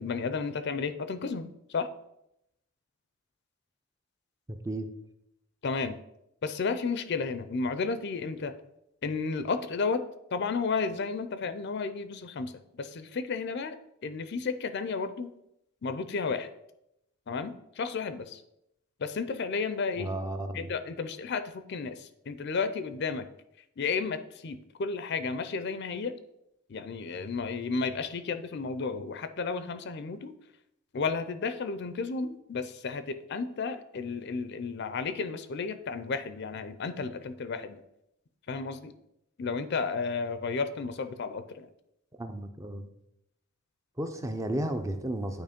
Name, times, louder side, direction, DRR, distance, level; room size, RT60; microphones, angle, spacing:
voice 1, 0.0-1.9 5.6-6.0 6.4-8.5 9.0-10.0 10.3-13.8 14.0-15.3 15.8-16.5 17.3-18.4 19.0-20.1 20.5-23.3 23.8-26.2 26.7-30.3 30.9-37.8 38.5-38.9 39.4-41.7, left 4 dB, 50° left, 11 dB, 0.4 m, -32 dB
voice 2, 20.0-20.7 42.2-42.9 44.0-45.4, right 1 dB, 15° right, 7 dB, 0.5 m, -33 dB
9.0 x 3.1 x 5.1 m, 0.82 s
head